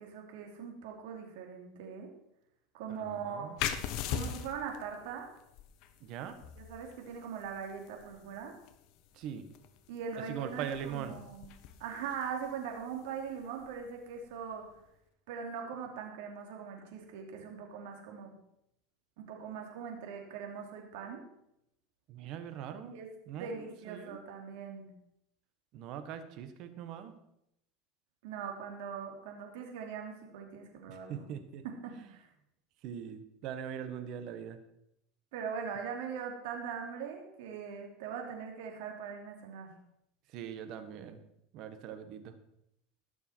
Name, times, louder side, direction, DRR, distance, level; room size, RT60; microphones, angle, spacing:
voice 1, 0.0-2.1 2.7-3.5 4.1-5.3 6.6-8.6 9.9-11.5 11.8-14.6 15.3-18.3 19.2-21.2 22.8-24.9 28.2-31.3 31.6-32.3 35.3-39.7, right 6 dB, 75° right, 2 dB, 3.3 m, -41 dB
voice 2, 2.9-3.6 6.0-6.4 9.1-9.5 10.3-11.2 22.1-23.0 23.2-24.2 25.7-27.1 30.9-31.6 31.9-32.1 32.8-34.6 40.3-41.2 41.5-42.3, right 8 dB, 55° right, 9 dB, 1.6 m, -41 dB
sound 1, 3.6-14.9, left 9 dB, 55° left, 1.1 m, -43 dB
19.0 x 6.9 x 4.7 m, 0.79 s
supercardioid pair, 125°, 0 cm